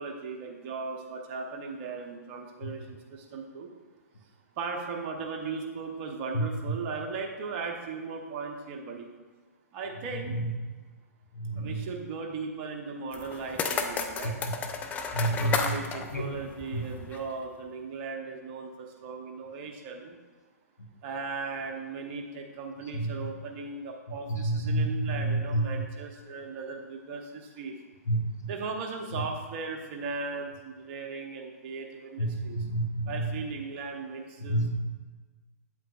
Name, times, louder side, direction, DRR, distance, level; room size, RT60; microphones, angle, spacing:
voice 1, 0.0-3.7 4.6-9.1 9.7-10.4 11.5-14.4 15.2-20.2 21.0-27.8 28.5-32.7 33.1-34.6, right 4 dB, 40° right, 2 dB, 1.0 m, -37 dB
voice 2, 11.4-11.8 15.1-15.8 16.1-16.2 16.7-16.8 22.9-23.3 24.3-25.6 28.1-28.2 32.2-33.2 34.5-34.8, right 1 dB, 85° left, 2 dB, 1.4 m, -29 dB
sound 1, 13.1-17.3, left 5 dB, 15° left, 0.6 m, -33 dB
8.8 x 8.1 x 2.5 m, 1.4 s
figure-of-eight pair, 120°, 9 cm